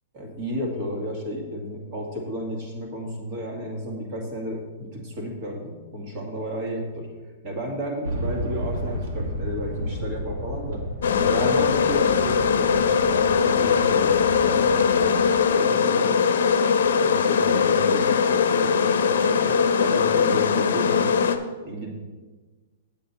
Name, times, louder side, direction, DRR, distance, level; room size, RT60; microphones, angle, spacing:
voice 1, 0.1-7.1 7.4-10.8 11.1-14.6 15.2-15.3 15.5-16.1 17.0-18.1 18.5-21.2 21.6-21.9, equal, 30° right, 1 dB, 1.9 m, -32 dB
sound 1, 8.0-15.4, equal, 70° right, 1.6 m, -33 dB
sound 2, 11.0-21.4, left 6 dB, 80° left, 0.7 m, -20 dB
8.4 x 7.7 x 4.3 m, 1.3 s
hypercardioid pair, 165°, 0 cm